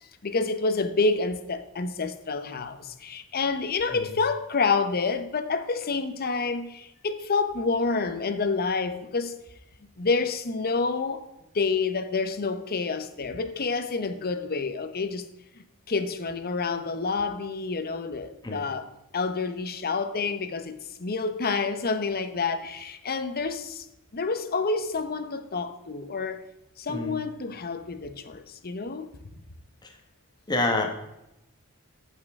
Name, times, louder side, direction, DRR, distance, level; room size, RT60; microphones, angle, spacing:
voice 1, 0.2-9.4 10.0-11.3 11.5-15.3 15.9-18.8 19.1-23.8 24.1-26.4 26.8-29.1, left 4 dB, 45° left, 0.8 m, -28 dB
voice 2, 26.9-27.2 29.8-30.0 30.5-30.9, left 2 dB, 20° left, 1.2 m, -28 dB
14.5 x 5.6 x 3.6 m
head